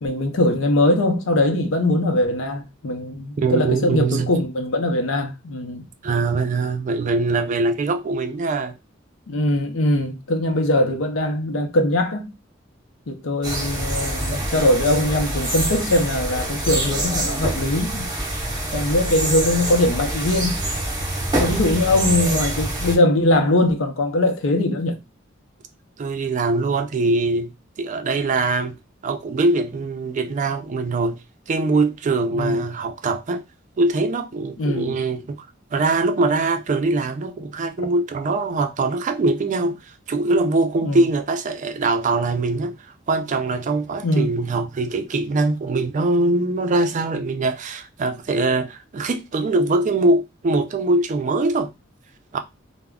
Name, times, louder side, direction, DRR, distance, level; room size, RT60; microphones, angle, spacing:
voice 1, 0.0-5.9 9.3-12.3 13.1-18.1 18.7-20.6 21.4-25.0 32.3-32.6 34.6-35.0 40.8-41.0 44.0-44.3, left 1 dB, 80° left, 0.6 m, -21 dB
voice 2, 3.4-4.3 6.0-8.7 26.0-27.5 27.8-28.8 29.0-31.2 31.5-33.4 33.8-35.4 35.7-39.8 40.1-42.8 43.1-51.7 52.3-52.4, right 3 dB, 40° right, 0.4 m, -22 dB
sound 1, 13.4-23.0, right 1 dB, 20° right, 0.8 m, -25 dB
2.3 x 2.0 x 3.4 m
head